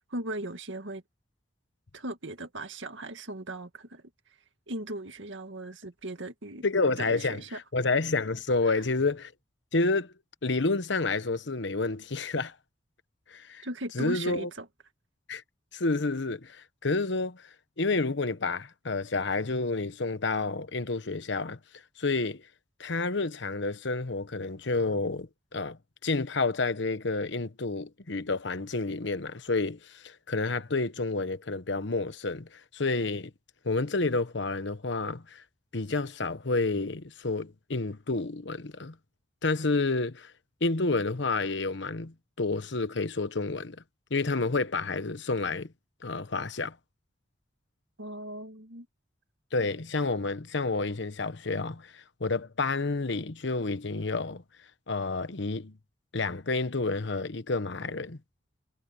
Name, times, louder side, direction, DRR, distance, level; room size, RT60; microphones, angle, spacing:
voice 1, 0.1-1.0 1.9-4.0 4.7-6.7 7.0-7.6 8.6-8.8 13.6-14.7 48.0-48.9, right 1 dB, 85° right, 2.0 m, -38 dB
voice 2, 6.6-9.3 9.7-10.1 10.4-12.5 13.3-13.7 13.9-14.5 15.3-15.4 15.7-17.5 17.8-21.6 22.0-22.4 22.8-33.3 33.6-35.4 35.7-38.9 39.4-40.3 40.6-43.8 44.1-45.7 46.0-46.8 49.5-54.4 54.9-55.7 56.1-58.2, left 3 dB, 70° left, 1.1 m, -29 dB
head